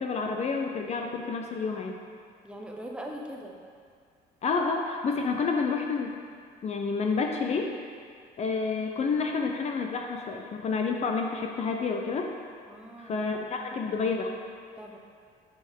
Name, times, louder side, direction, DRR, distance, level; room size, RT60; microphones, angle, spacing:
voice 1, 0.0-2.0 4.4-6.1 6.6-7.7 8.4-12.3 13.0-14.3, left 4 dB, 40° left, 2 dB, 0.6 m, -29 dB
voice 2, 2.4-3.5 12.7-13.3 14.8-15.0, equal, 5° right, -1 dB, 0.9 m, -41 dB
9.1 x 5.5 x 3.7 m, 2.1 s
cardioid pair, 110°, 17 cm